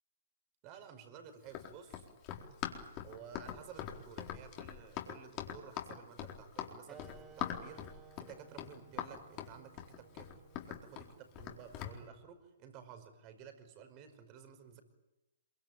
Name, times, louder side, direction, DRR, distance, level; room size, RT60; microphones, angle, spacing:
voice 1, 0.6-2.1 3.0-10.4 10.7-14.8, right 7 dB, 35° right, 8 dB, 5.2 m, -54 dB
Run, 1.4-12.0, left 10 dB, 35° left, 4.2 m, -43 dB
sound 1, 6.9-12.0, right 7 dB, 15° right, 2.6 m, -59 dB
27.0 x 24.0 x 9.0 m, 0.97 s
figure-of-eight pair, 120°, 0 cm